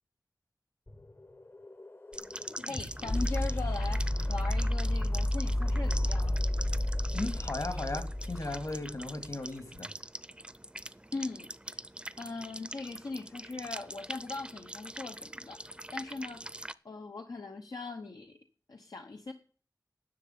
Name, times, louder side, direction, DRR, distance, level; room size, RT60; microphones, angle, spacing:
sound 1, 0.9-9.0, left 1 dB, 35° left, 0.9 m, -31 dB
sound 2, 2.1-16.7, right 1 dB, 15° right, 0.5 m, -44 dB
voice 1, 2.7-6.4 11.1-11.8 12.2-16.6 16.8-18.4 18.7-19.3, left 3 dB, 85° left, 1.0 m, -40 dB
voice 2, 7.1-9.9, left 2 dB, 60° left, 2.6 m, -36 dB
10.5 x 6.7 x 9.3 m
wide cardioid pair, 65°, 6 cm